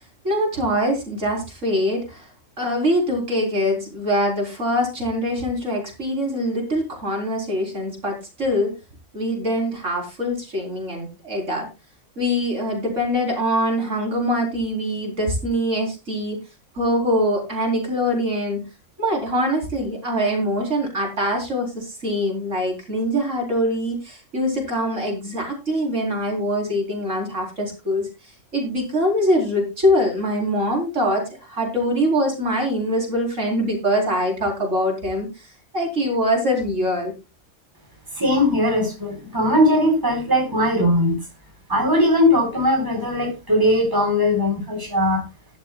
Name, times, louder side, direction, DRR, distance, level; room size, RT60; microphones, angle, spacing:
voice 1, 0.2-2.3 2.6-8.7 9.1-11.7 12.2-16.4 16.8-18.6 19.0-28.1 28.5-35.5 35.7-37.1, equal, 80° right, 0 dB, 4.4 m, -23 dB
voice 2, 38.2-41.2 41.7-45.2, left 1 dB, 15° right, 3 dB, 4.0 m, -19 dB
13.5 x 12.5 x 2.3 m, 0.27 s
omnidirectional pair, 1.3 m